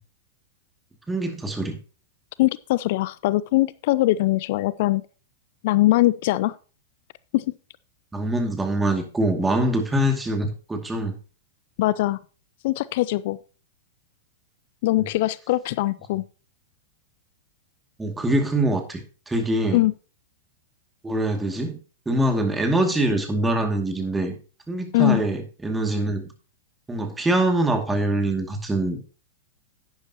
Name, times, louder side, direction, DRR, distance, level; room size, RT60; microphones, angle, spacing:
voice 1, 1.1-1.8 8.1-11.1 18.0-19.9 21.0-21.8 22.1-24.4 24.7-26.2 26.9-29.0, right 1 dB, 10° right, 4 dB, 2.4 m, -24 dB
voice 2, 2.4-5.0 5.6-6.5 7.3-7.4 11.8-12.2 12.6-13.4 14.8-16.2 19.7-19.9 24.9-25.2, left 17 dB, 55° left, 19 dB, 0.4 m, -21 dB
11.0 x 10.0 x 2.9 m, 0.36 s
hypercardioid pair, 105°, 0 cm